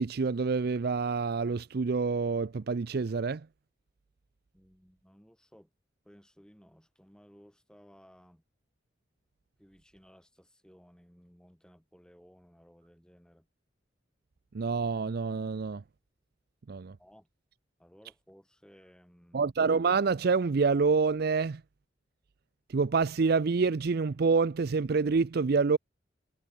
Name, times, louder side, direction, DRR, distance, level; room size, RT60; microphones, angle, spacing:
voice 1, 0.0-3.5 14.5-15.8 16.7-17.0 19.3-21.6 22.7-25.8, right 4 dB, 55° right, 0.5 m, -27 dB
voice 2, 4.5-5.7 6.0-8.4 9.6-13.5 17.0-17.3 17.8-19.4, equal, 5° left, 5.8 m, -58 dB
head